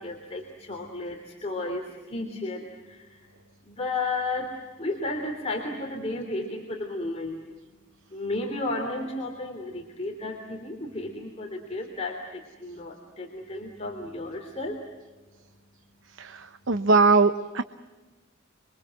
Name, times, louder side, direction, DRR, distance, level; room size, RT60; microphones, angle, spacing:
voice 1, 0.0-3.3 3.6-7.4 8.1-14.8, left 2 dB, 30° left, 1 dB, 3.2 m, -33 dB
voice 2, 16.2-17.6, right 4 dB, 60° right, 11 dB, 0.9 m, -21 dB
28.0 x 23.5 x 7.7 m, 1.2 s
head